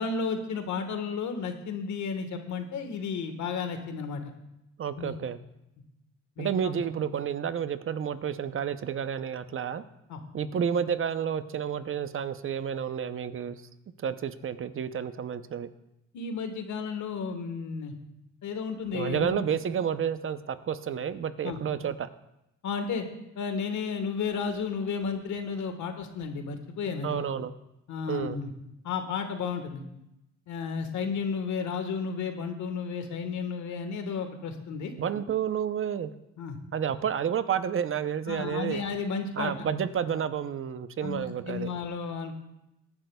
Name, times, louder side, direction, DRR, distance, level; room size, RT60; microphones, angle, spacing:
voice 1, 0.0-4.3 5.0-5.1 6.4-6.7 10.1-10.2 16.1-17.9 18.4-19.4 21.4-21.6 22.6-23.1 23.3-27.2 27.9-28.5 28.8-29.8 30.5-34.9 36.4-36.6 38.3-39.7 41.0-42.4, left 5 dB, 75° left, 6 dB, 1.4 m, -33 dB
voice 2, 4.8-5.4 6.4-9.8 10.3-13.6 14.0-15.7 18.9-22.1 27.0-27.5 28.1-28.4 35.0-36.1 36.7-38.8 39.4-41.7, right 8 dB, 45° right, 12 dB, 0.7 m, -30 dB
17.5 x 10.5 x 2.3 m, 0.86 s
cardioid pair, 90°, 30 cm